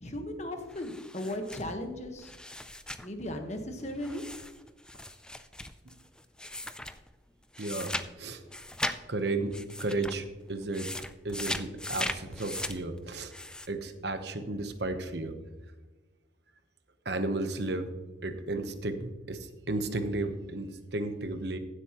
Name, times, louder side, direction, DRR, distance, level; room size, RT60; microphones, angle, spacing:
voice 1, 0.0-2.3 3.0-4.2, left 1 dB, 35° left, 5 dB, 1.3 m, -36 dB
sound 1, 0.7-3.1 4.0-7.1 7.5-9.0 9.3-10.2 10.6-13.7, left 1 dB, 5° left, 0.4 m, -38 dB
voice 2, 7.6-8.4 9.1-9.5 9.8-10.9 11.2-13.3 13.7-15.3 17.0-17.9 18.2-21.6, right 2 dB, 60° right, 8 dB, 1.0 m, -33 dB
15.5 x 8.2 x 3.0 m, 1.2 s
head